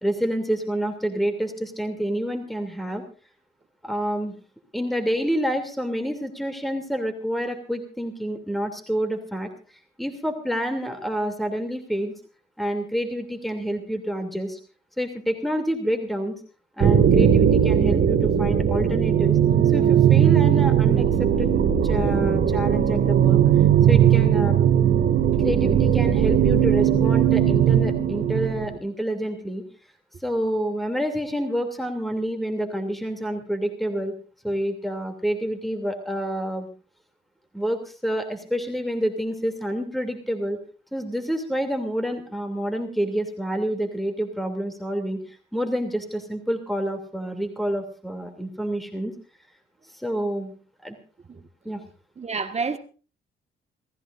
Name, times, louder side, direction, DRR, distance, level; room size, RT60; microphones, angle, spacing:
voice 1, 0.0-3.0 3.8-4.3 4.7-9.5 10.0-12.1 12.6-14.6 15.0-16.3 16.8-19.4 19.7-21.5 21.8-23.4 23.9-24.6 25.4-29.6 30.2-34.1 34.4-36.7 37.5-40.6 40.9-49.1 49.9-50.5 50.8-51.0 51.6-51.8, equal, ahead, 2.8 m, -28 dB
sound 1, 16.8-28.8, right 9 dB, 60° right, 2.3 m, -18 dB
voice 2, 52.2-52.8, right 4 dB, 35° right, 1.6 m, -28 dB
28.5 x 15.0 x 2.6 m
cardioid pair, 90°, 20 cm